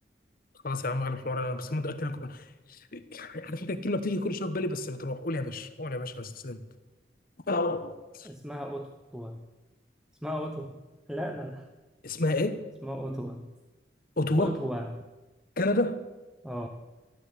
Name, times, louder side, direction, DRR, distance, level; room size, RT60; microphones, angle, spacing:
voice 1, 0.6-6.6 7.5-8.3 12.0-12.6 14.2-14.6 15.6-16.0, left 2 dB, 55° left, 1.2 m, -30 dB
voice 2, 8.2-9.4 10.2-10.8 11.1-11.7 12.8-13.5 14.4-15.0 16.4-16.7, equal, 5° right, 0.9 m, -35 dB
13.5 x 13.0 x 8.4 m
head